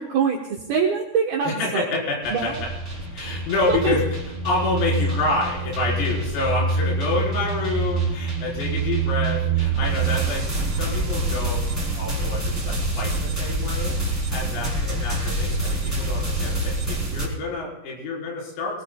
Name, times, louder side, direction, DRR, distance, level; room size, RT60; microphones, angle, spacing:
voice 1, 0.0-1.8 2.3-2.6 3.7-3.9, right 6 dB, 70° right, -1 dB, 2.3 m, -24 dB
voice 2, 1.5-2.5 3.1-11.6 12.0-18.8, left 3 dB, 90° left, -3 dB, 7.2 m, -28 dB
sound 1, 2.2-17.3, right 1 dB, 5° right, 2.1 m, -28 dB
sound 2, 2.6-10.2, right 4 dB, 35° right, 0.7 m, -26 dB
25.5 x 18.5 x 2.3 m, 0.90 s
omnidirectional pair, 6.0 m